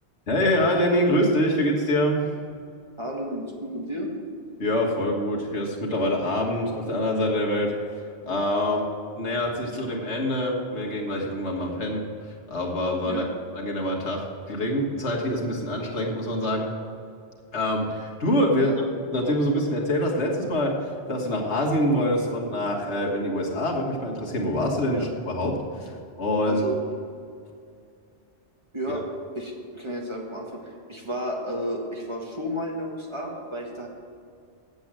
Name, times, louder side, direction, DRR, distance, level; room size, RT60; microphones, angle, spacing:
voice 1, 0.3-2.2 4.6-7.7 8.3-8.8 9.2-12.0 12.5-13.2 13.5-16.7 17.5-18.7 19.1-20.7 21.1-25.5 26.2-26.7 28.9-29.0, left 1 dB, 75° left, -1 dB, 1.9 m, -25 dB
voice 2, 3.0-4.1 8.6-8.8 13.1-13.3 18.5-18.8 24.9-25.0 26.4-26.7 28.7-29.0 29.3-33.9, equal, 25° right, -2 dB, 1.7 m, -32 dB
8.1 x 8.0 x 7.5 m, 2.3 s
omnidirectional pair, 1.2 m